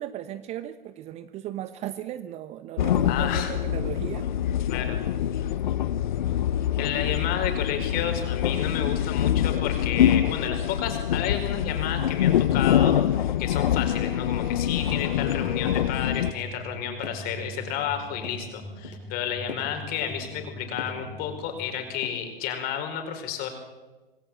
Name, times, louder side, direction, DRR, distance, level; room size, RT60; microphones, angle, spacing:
voice 1, 0.0-4.3, right 12 dB, 20° right, 12 dB, 0.9 m, -36 dB
sound 1, 2.8-16.3, left 10 dB, 55° left, 1.0 m, -25 dB
voice 2, 3.1-3.5 4.7-5.0 6.8-23.5, left 8 dB, 30° left, 6 dB, 5.0 m, -31 dB
sound 2, 14.8-22.1, right 1 dB, ahead, 3.3 m, -43 dB
sound 3, 15.4-15.5 15.8-16.0 16.4-16.5 17.0-17.3 17.6-18.0 18.2-18.5 18.8-19.1 19.5-19.7 20.1-20.3 20.8-21.0 21.4-21.7 22.0-22.3, left 5 dB, 70° left, 6.1 m, -42 dB
26.5 x 20.0 x 7.6 m, 1.2 s
figure-of-eight pair, 110°, 29 cm